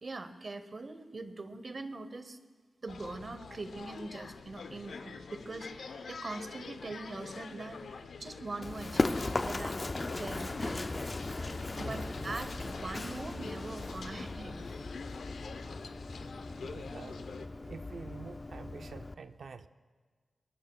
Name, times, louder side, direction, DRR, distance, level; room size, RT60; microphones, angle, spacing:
voice 1, 0.0-2.4 2.8-9.9 10.1-11.1 11.8-14.7, right 3 dB, 35° right, 9 dB, 0.9 m, -42 dB
sound 1, 2.9-17.5, left 5 dB, 80° left, 0.7 m, -46 dB
Run, 8.6-19.1, left 2 dB, 25° left, 0.4 m, -37 dB
sound 2, 11.3-14.6, left 2 dB, 50° left, 2.5 m, -47 dB
voice 2, 16.6-17.2 17.6-19.7, right 5 dB, 60° right, 9 dB, 0.6 m, -47 dB
23.0 x 22.5 x 2.3 m, 1.5 s
wide cardioid pair, 175°, 0 cm